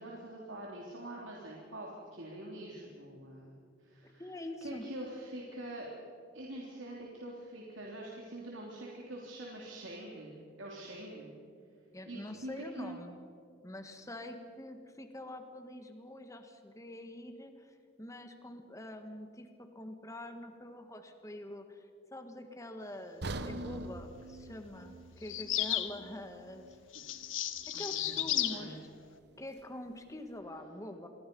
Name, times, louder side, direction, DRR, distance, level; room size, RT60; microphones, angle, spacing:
voice 1, 0.0-3.5 3.8-4.3 4.6-5.9 6.3-11.3 12.1-13.0 27.7-28.7, right 1 dB, 80° right, -2 dB, 3.3 m, -45 dB
voice 2, 4.0-4.9 11.9-13.2 13.6-26.8 27.7-28.8 29.4-31.1, left 1 dB, 15° left, 6 dB, 1.7 m, -45 dB
sound 1, 23.2-27.3 27.6-27.8 28.4-28.5, right 2 dB, 55° right, 1.0 m, -44 dB
sound 2, 25.2-25.9 26.9-28.6, left 12 dB, 85° left, 1.3 m, -33 dB
27.5 x 21.5 x 5.5 m, 2.4 s
head